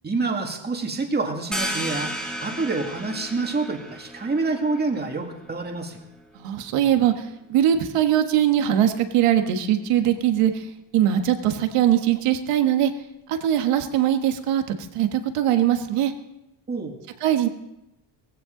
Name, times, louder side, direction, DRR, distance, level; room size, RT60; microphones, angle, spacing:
voice 1, 0.0-2.1 2.4-6.0 16.7-17.0, right 3 dB, 20° right, 3 dB, 2.1 m, -27 dB
sound 1, 1.5-6.9, equal, ahead, 2.1 m, -34 dB
voice 2, 6.4-7.1 7.5-10.5 10.9-12.9 13.3-16.1 17.2-17.5, right 11 dB, 90° right, 7 dB, 1.5 m, -21 dB
18.5 x 15.5 x 3.9 m, 0.88 s
cardioid pair, 130°, 50 cm